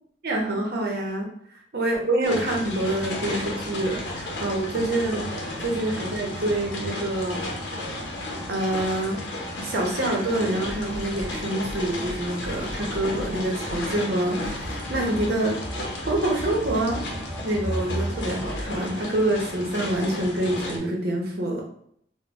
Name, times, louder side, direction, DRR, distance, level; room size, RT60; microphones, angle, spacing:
voice 1, 0.2-1.3 1.7-7.4 8.5-9.2 9.6-15.6 16.1-17.0 17.4-21.6, right 1 dB, 60° right, -1 dB, 0.8 m, -26 dB
sound 1, 2.2-20.8, left 1 dB, 80° left, 0.7 m, -34 dB
sound 2, 2.7-18.6, right 1 dB, 10° right, 0.3 m, -38 dB
3.8 x 2.2 x 2.3 m, 0.67 s
head